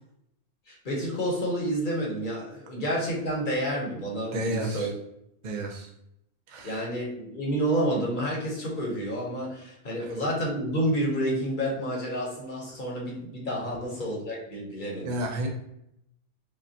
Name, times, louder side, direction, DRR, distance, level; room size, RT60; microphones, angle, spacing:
voice 1, 0.7-4.9 6.6-15.5, equal, 45° left, -2 dB, 0.9 m, -29 dB
voice 2, 4.3-4.9 5.4-5.9 6.5-6.9 10.0-10.2 15.0-15.5, right 1 dB, 55° right, 1 dB, 0.5 m, -32 dB
5.1 x 2.1 x 2.8 m, 0.79 s
omnidirectional pair, 1.3 m